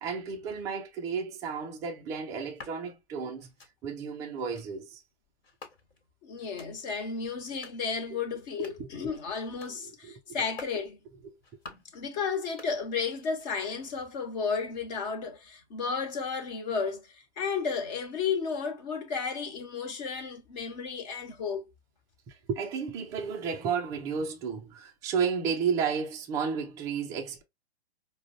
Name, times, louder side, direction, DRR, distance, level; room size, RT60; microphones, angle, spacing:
voice 1, 0.0-3.5 3.8-5.0 8.1-8.2 8.8-8.9 10.0-10.2 11.2-11.3 11.7-11.8 22.3-27.4, right 6 dB, 10° right, 0.3 m, -32 dB
sound 1, 2.4-2.8 3.4-3.7 4.4-4.7 5.4-6.1 6.4-6.7 7.4-7.8 8.4-8.9 9.4-9.8 10.4-10.8 11.4-11.9 12.4-13.1 13.4-13.9, left 3 dB, 60° left, 1.4 m, -50 dB
voice 2, 6.2-11.0 11.9-21.7, left 5 dB, 40° left, 1.2 m, -33 dB
4.9 x 2.1 x 2.5 m
figure-of-eight pair, 115°, 34 cm